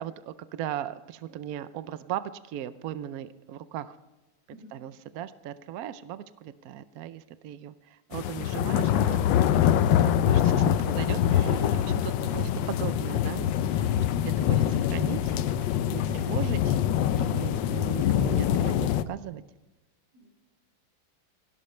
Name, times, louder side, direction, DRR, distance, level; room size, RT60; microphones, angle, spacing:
voice 1, 0.0-3.9 4.7-9.6 10.0-13.9 14.4-15.3 15.9-16.8 17.1-19.4, right 11 dB, 75° right, 13 dB, 0.8 m, -38 dB
sound 1, 8.1-19.0, left 10 dB, 75° left, 1.3 m, -24 dB
voice 2, 11.6-12.0 16.0-16.4 20.1-20.3, left 2 dB, 50° right, -3 dB, 7.6 m, -51 dB
18.5 x 16.5 x 3.2 m, 1.1 s
omnidirectional pair, 2.2 m